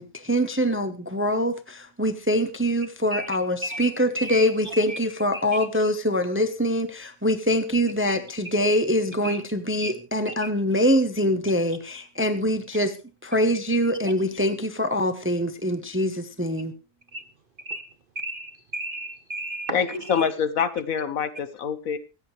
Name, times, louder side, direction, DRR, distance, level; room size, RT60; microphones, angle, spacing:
voice 1, 0.0-13.0 13.2-16.7, equal, 10° right, 0.6 m, -24 dB
voice 2, 3.6-5.0 5.3-5.4 9.2-9.4 9.8-9.9 10.3-10.5 17.1-17.2 17.7-17.9 18.2-20.3, right 1 dB, 50° right, 0.7 m, -34 dB
voice 3, 19.7-22.0, left 7 dB, 65° left, 1.3 m, -25 dB
24.5 x 8.2 x 3.2 m
omnidirectional pair, 1.6 m